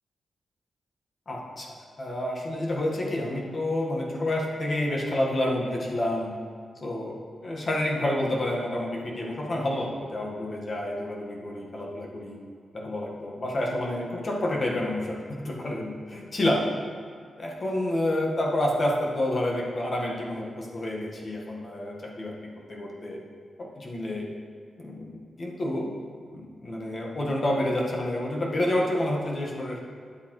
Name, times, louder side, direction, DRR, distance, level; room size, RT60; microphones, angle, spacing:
voice 1, 1.3-1.7 2.0-6.3 6.8-7.2 7.4-12.4 12.7-16.7 17.4-23.2 23.6-24.3 24.8-25.9 26.3-29.8, left 1 dB, 45° left, -2 dB, 1.6 m, -29 dB
10.0 x 8.2 x 3.2 m, 2.2 s
cardioid pair, 90°, 0 cm